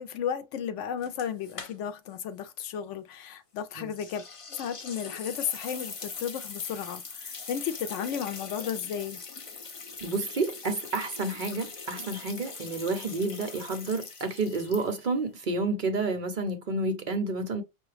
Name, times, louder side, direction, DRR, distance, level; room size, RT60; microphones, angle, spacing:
voice 1, 0.0-4.2 4.5-9.2, left 8 dB, 80° left, 0.9 m, -34 dB
sound 1, 1.0-2.1 2.4-2.5 3.9-15.2, left 4 dB, 40° left, 0.5 m, -42 dB
voice 2, 10.0-17.6, right 3 dB, 50° right, 0.7 m, -30 dB
5.6 x 2.4 x 3.1 m
omnidirectional pair, 1.2 m